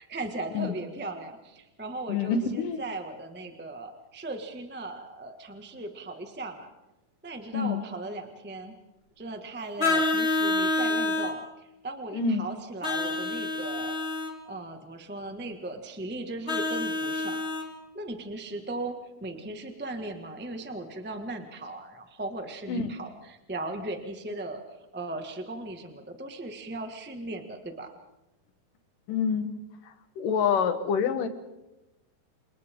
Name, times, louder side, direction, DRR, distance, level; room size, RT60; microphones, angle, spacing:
voice 1, 0.0-6.7 7.2-8.7 9.2-14.0 14.4-17.4 17.9-18.9 19.2-24.6 24.9-27.9, right 2 dB, 10° right, 4 dB, 0.5 m, -37 dB
voice 2, 2.1-2.8 7.5-7.8 12.1-12.5 22.7-22.9 29.1-29.6 30.2-31.3, left 6 dB, 65° left, 9 dB, 2.9 m, -26 dB
Vehicle horn car horn honking, 9.8-11.3 12.8-14.3 16.5-17.7, left 2 dB, 15° left, 2.7 m, -27 dB
29.5 x 28.0 x 3.8 m, 0.98 s
omnidirectional pair, 4.3 m